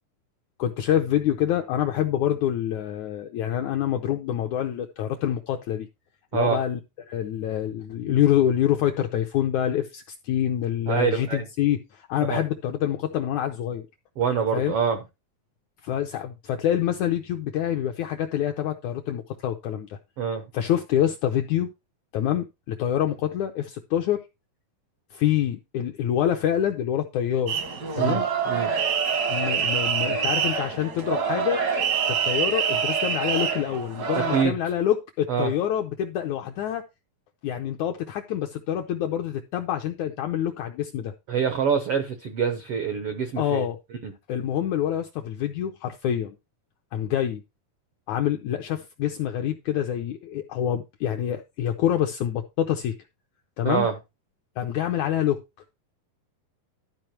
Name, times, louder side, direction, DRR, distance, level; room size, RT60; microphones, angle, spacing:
voice 1, 0.6-5.9 6.3-6.8 7.1-13.9 14.5-14.7 15.8-20.0 20.5-21.7 22.1-24.2 25.1-27.6 27.9-28.3 29.3-31.6 32.1-36.8 37.4-41.1 43.4-43.8 44.3-46.4 46.9-47.4 48.1-53.0 53.6-53.9 54.6-55.4, left 10 dB, 85° left, 1.7 m, -26 dB
voice 2, 10.9-11.5 12.3-12.4 14.2-15.0 20.2-20.4 28.0-28.7 34.1-34.5 35.3-35.5 41.3-43.7 44.0-44.1 53.6-53.9, right 7 dB, 85° right, 1.2 m, -25 dB
sound 1, 27.5-34.4, right 7 dB, 65° right, 0.9 m, -25 dB
12.5 x 4.8 x 4.5 m
omnidirectional pair, 4.1 m